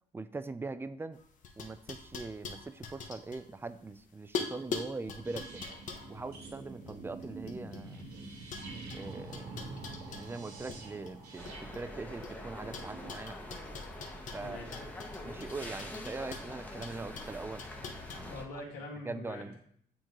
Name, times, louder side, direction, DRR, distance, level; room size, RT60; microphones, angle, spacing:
voice 1, 0.1-1.2 1.6-5.6 6.1-8.1 8.9-9.6 10.1-13.6 14.3-14.6 15.2-17.7 18.1-18.3 19.0-19.6, right 3 dB, 15° right, 13 dB, 0.3 m, -42 dB
sound 1, 1.1-4.0 4.3-8.0 8.5-10.8 11.1-12.3 12.7-18.2, left 5 dB, 50° left, 0.9 m, -43 dB
sound 2, 5.2-13.1, right 3 dB, 70° right, 1.2 m, -46 dB
sound 3, 11.4-18.5, left 1 dB, 10° left, 0.9 m, -45 dB
voice 2, 14.4-14.7 18.1-19.6, left 2 dB, 75° left, -2 dB, 1.8 m, -44 dB
8.8 x 3.7 x 2.9 m, 0.63 s
cardioid pair, 110°, 17 cm